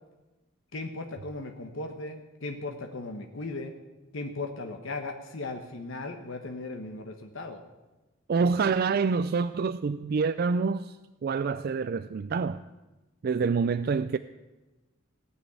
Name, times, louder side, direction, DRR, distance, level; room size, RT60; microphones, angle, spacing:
voice 1, 0.7-3.7 4.1-7.6 8.7-8.8, left 2 dB, 75° left, 1.2 m, -37 dB
voice 2, 8.3-11.0 11.2-12.6 13.2-14.2, right 5 dB, 50° right, 0.3 m, -26 dB
17.0 x 6.2 x 9.3 m
head